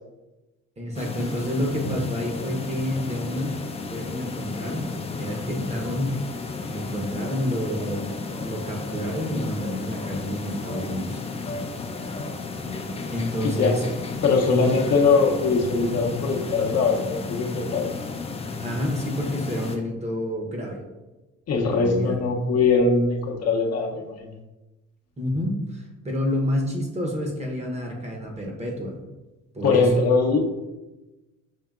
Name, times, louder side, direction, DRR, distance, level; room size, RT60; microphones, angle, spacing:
voice 1, 0.8-3.6 3.9-4.8 5.2-6.2 6.7-11.2 13.1-13.8 18.6-20.8 21.6-22.2 25.2-29.0 29.5-29.9, left 1 dB, 20° right, 0 dB, 0.8 m, -29 dB
sound 1, 0.9-19.8, left 3 dB, 20° left, 0.4 m, -33 dB
voice 2, 13.4-13.8 14.2-18.0 21.5-24.4 29.6-30.5, left 4 dB, 55° left, 0 dB, 0.7 m, -21 dB
5.4 x 2.7 x 2.4 m, 1.1 s
cardioid pair, 90°, 30 cm